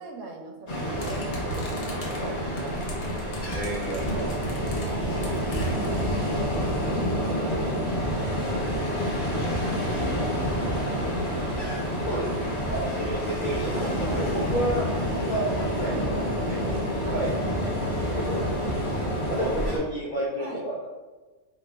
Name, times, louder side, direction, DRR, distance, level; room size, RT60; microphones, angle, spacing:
voice 1, 0.0-2.9 3.9-5.5 5.8-10.1 10.6-11.1 12.6-12.8 13.8-15.1 15.5-18.2 18.6-19.1 20.4-20.6, right 3 dB, 75° right, 1 dB, 1.0 m, -41 dB
Ocean, 0.7-19.8, equal, 45° left, 1.0 m, -28 dB
sound 1, 1.0-6.2, right 1 dB, 80° left, 1.3 m, -38 dB
voice 2, 3.5-4.0 12.1-14.8 15.1-17.3 17.6-18.4 19.3-20.9, right 1 dB, 60° left, -6 dB, 0.5 m, -31 dB
sound 2, 3.5-19.5, right 1 dB, 15° right, 0.4 m, -37 dB
2.8 x 2.2 x 3.9 m, 1.3 s
omnidirectional pair, 1.5 m